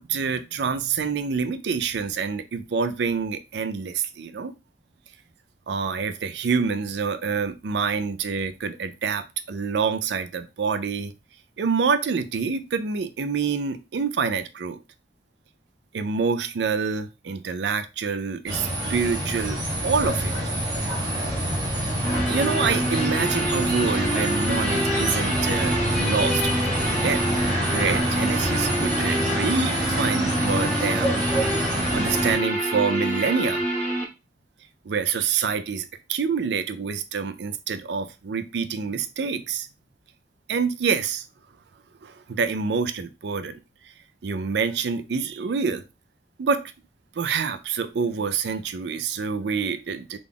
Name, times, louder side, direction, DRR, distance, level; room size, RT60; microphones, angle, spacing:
voice 1, 0.0-4.5 5.7-11.1 11.6-14.8 15.9-19.6 19.8-20.3 22.3-26.7 27.0-27.2 27.6-31.1 31.5-31.6 31.9-33.6 34.9-39.7 40.5-41.3 42.0-43.6 44.2-45.8 46.4-46.6 47.2-50.2, right 5 dB, 75° right, 10 dB, 0.4 m, -27 dB
sound 1, 18.5-32.3, equal, 20° right, 1.3 m, -26 dB
sound 2, 22.0-34.0, right 1 dB, 10° left, 1.0 m, -27 dB
3.7 x 3.5 x 2.3 m, 0.27 s
head